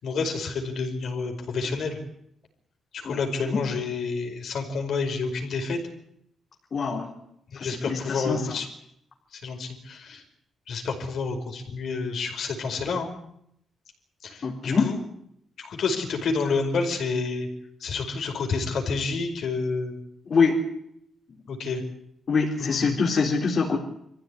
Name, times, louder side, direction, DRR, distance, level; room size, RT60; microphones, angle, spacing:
voice 1, 0.0-2.0 2.9-5.8 7.5-8.7 9.4-10.2 10.7-13.1 14.2-15.0 15.6-17.5 17.8-20.0 21.5-21.8 22.6-22.8, left 4 dB, 65° left, 3 dB, 5.2 m, -29 dB
voice 2, 3.0-3.7 6.7-7.1 7.5-8.6 14.4-14.9 20.3-20.6 22.3-23.8, left 4 dB, 40° left, -1 dB, 3.8 m, -25 dB
25.5 x 15.0 x 9.9 m, 0.74 s
cardioid pair, 140°, 0 cm